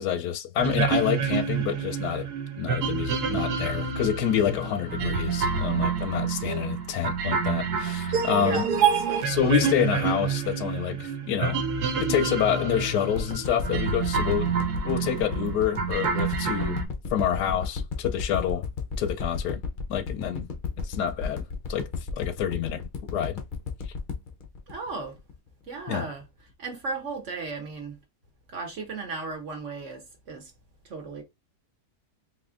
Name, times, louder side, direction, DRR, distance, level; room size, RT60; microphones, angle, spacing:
voice 1, 0.0-2.3 2.6-8.7 9.2-11.7 12.0-14.5 14.8-16.8 17.1-18.7 19.0-19.6 19.9-20.5 20.8-21.4 21.7-21.9 22.2-23.4 25.9-26.0, left 9 dB, 80° left, 1.1 m, -27 dB
sound 1, 0.6-16.9, right 6 dB, 75° right, 1.3 m, -28 dB
voice 2, 6.4-6.8 8.4-8.6 9.0-9.8 24.7-25.2 25.6-26.2 26.6-28.0 28.5-30.5 30.8-31.2, right 4 dB, 55° right, 1.1 m, -36 dB
sound 2, 13.1-25.5 25.9-26.0, left 5 dB, 55° left, 0.5 m, -33 dB
4.2 x 3.0 x 2.4 m
omnidirectional pair, 1.8 m